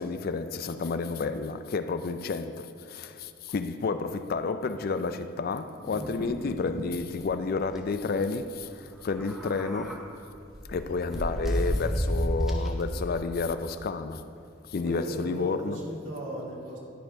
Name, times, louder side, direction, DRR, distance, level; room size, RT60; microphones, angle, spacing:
voice 1, 0.0-10.1 10.7-14.2 14.7-15.8, left 4 dB, 50° left, 0.4 m, -31 dB
sound 1, 5.9-6.9 7.2-7.3 7.6-7.8 9.0-10.0 10.5-12.8, equal, ahead, 0.8 m, -31 dB
voice 2, 14.7-16.8, right 1 dB, 75° right, 2.4 m, -37 dB
12.5 x 4.4 x 5.2 m
head